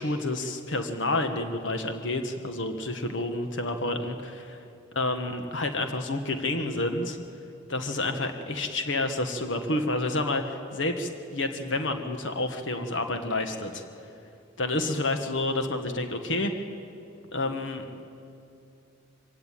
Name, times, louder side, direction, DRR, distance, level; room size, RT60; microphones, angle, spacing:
voice 1, 0.0-4.6 4.9-7.2 7.7-13.8 14.6-16.5 17.3-18.0, left 2 dB, 75° left, 6 dB, 1.5 m, -29 dB
25.0 x 17.0 x 9.1 m, 2.7 s
head